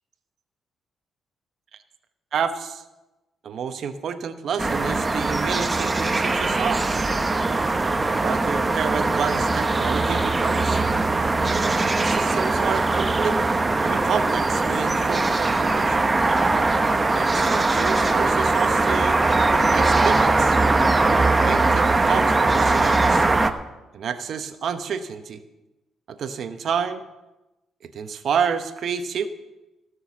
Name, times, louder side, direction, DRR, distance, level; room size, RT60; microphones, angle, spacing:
voice 1, 2.3-2.8 3.4-7.1 8.1-10.8 11.8-13.4 13.8-16.1 17.1-20.6 21.3-23.3 23.9-25.4 26.1-27.0 27.9-29.3, right 7 dB, 60° right, 10 dB, 0.9 m, -29 dB
sound 1, 4.6-23.5, right 3 dB, 20° right, 0.9 m, -21 dB
16.0 x 6.3 x 7.3 m, 1.0 s
cardioid pair, 90°, 0 cm